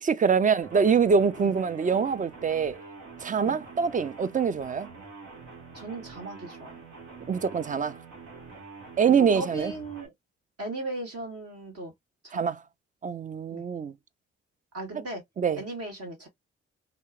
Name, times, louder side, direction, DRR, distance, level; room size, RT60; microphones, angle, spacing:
voice 1, 0.0-2.8 3.2-4.9 7.3-8.0 9.0-9.7 12.3-12.6 13.0-13.9 15.4-15.6, right 6 dB, 30° right, 0.3 m, -24 dB
sound 1, 0.6-10.1, right 4 dB, 80° right, 1.0 m, -46 dB
voice 2, 5.7-6.8 9.0-10.1 10.6-11.9 12.2-12.5 13.5-13.6 14.7-15.2 15.6-16.3, right 2 dB, 55° right, 1.4 m, -37 dB
2.8 x 2.0 x 2.3 m
supercardioid pair, 45°, 30 cm